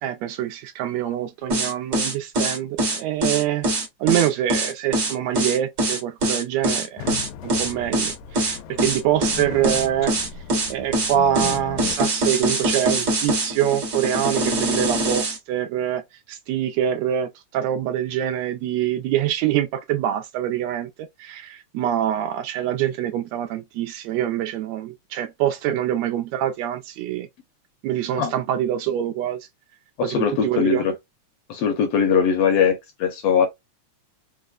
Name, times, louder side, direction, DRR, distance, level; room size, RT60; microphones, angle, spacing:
voice 1, 0.0-3.7 4.0-7.0 7.4-10.1 10.7-16.0 16.3-20.9 21.2-27.3 27.8-29.4 30.0-30.8, right 11 dB, 80° right, 1.7 m, -25 dB
sound 1, 1.5-15.4, right 1 dB, 50° right, 1.2 m, -23 dB
sound 2, 7.0-12.0, left 8 dB, 90° left, 2.0 m, -36 dB
voice 2, 30.0-31.0 31.5-33.5, left 7 dB, 75° left, 1.6 m, -20 dB
4.7 x 2.1 x 2.3 m
omnidirectional pair, 3.4 m